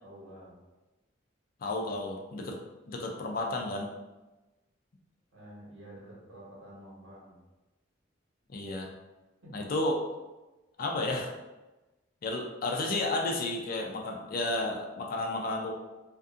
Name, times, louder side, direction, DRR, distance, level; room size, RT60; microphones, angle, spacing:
voice 1, 0.0-0.5 5.3-7.3 9.4-9.5, right 1 dB, 80° right, -7 dB, 1.3 m, -49 dB
voice 2, 1.6-2.6 2.9-3.9 8.5-8.9 9.5-10.0 10.8-11.3 12.2-15.7, left 2 dB, 50° left, 1 dB, 0.4 m, -32 dB
2.6 x 2.5 x 2.4 m, 1.1 s
head